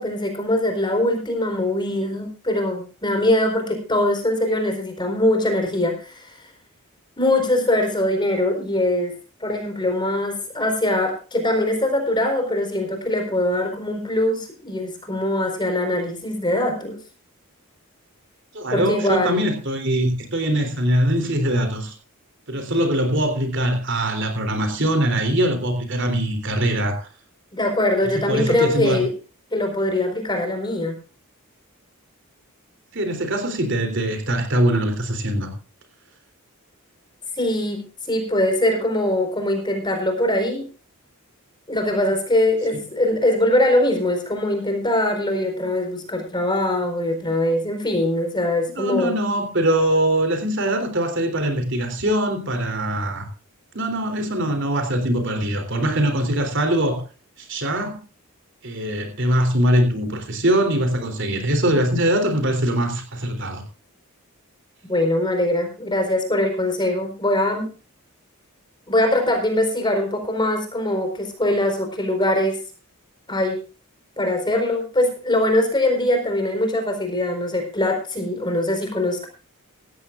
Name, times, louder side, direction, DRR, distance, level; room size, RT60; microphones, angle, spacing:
voice 1, 0.0-6.3 7.2-9.1 9.4-17.0 18.7-19.5 27.5-29.1 29.5-31.0 37.4-40.6 41.7-49.1 64.9-67.7 68.9-72.6 73.3-73.6 74.2-79.3, left 1 dB, 20° left, 4.4 m, -22 dB
voice 2, 18.5-21.9 22.5-27.1 28.1-29.0 32.9-35.5 42.7-42.8 48.7-53.3 53.7-57.0 57.4-58.0 58.6-63.6, right 1 dB, 55° right, 3.4 m, -22 dB
17.0 x 15.0 x 2.5 m
head